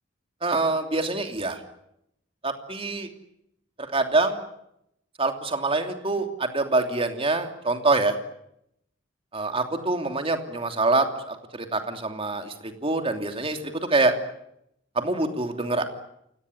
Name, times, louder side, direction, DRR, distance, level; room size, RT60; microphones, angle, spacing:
voice 1, 0.4-1.6 2.4-3.1 3.8-4.4 5.2-8.2 9.3-14.1 14.9-15.8, right 3 dB, 30° right, 6 dB, 3.0 m, -25 dB
28.5 x 18.0 x 10.0 m, 0.78 s
head